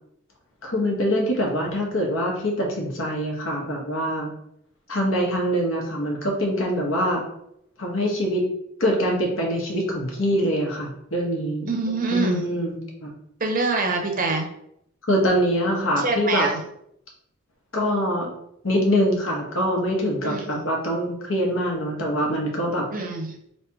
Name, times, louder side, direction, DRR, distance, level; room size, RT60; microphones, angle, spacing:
voice 1, 0.6-4.3 4.9-7.2 7.8-8.4 8.8-11.7 12.1-13.1 15.1-16.5 17.7-18.3 18.6-22.9, equal, 75° left, -1 dB, 1.1 m, -24 dB
voice 2, 11.7-12.4 13.4-14.5 16.0-16.6 20.2-20.6 22.9-23.3, right 3 dB, 45° right, 3 dB, 0.7 m, -25 dB
3.2 x 2.8 x 4.6 m, 0.74 s
head